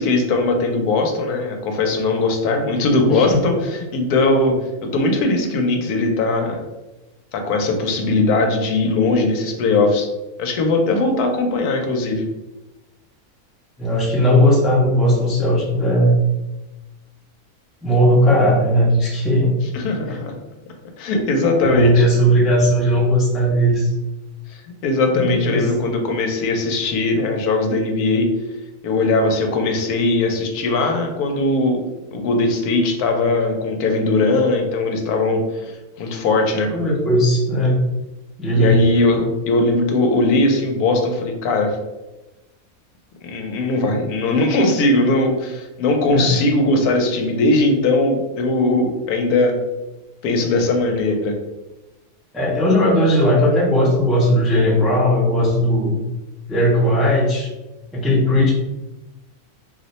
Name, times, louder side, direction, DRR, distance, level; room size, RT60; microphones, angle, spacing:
voice 1, 0.0-6.6 7.3-10.1 10.4-12.3 19.7-20.3 21.0-22.1 24.5-28.3 28.8-31.8 32.1-35.7 36.0-36.7 38.5-41.8 43.2-49.6 50.2-51.4, left 2 dB, 90° left, 3 dB, 1.1 m, -19 dB
voice 2, 13.8-16.2 17.8-19.5 21.6-23.9 25.1-25.7 36.7-37.8 38.4-38.8 46.1-46.4 52.3-55.9 56.5-57.5 57.9-58.5, equal, ahead, -5 dB, 0.4 m, -17 dB
2.7 x 2.1 x 3.9 m, 1.0 s
omnidirectional pair, 1.6 m